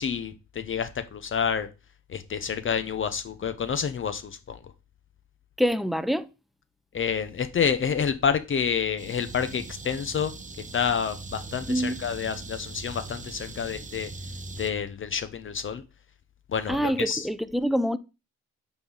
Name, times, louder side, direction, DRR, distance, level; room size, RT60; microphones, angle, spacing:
voice 1, 0.0-1.7 2.1-4.6 6.9-10.3 10.7-14.1 14.6-15.8 16.5-17.3, left 7 dB, 40° left, 0.8 m, -28 dB
voice 2, 5.6-6.3 11.7-12.0 16.7-18.0, equal, ahead, 0.5 m, -25 dB
sound 1, 9.0-14.7, right 3 dB, 25° right, 1.0 m, -41 dB
8.8 x 4.1 x 4.0 m
cardioid pair, 90°, 30 cm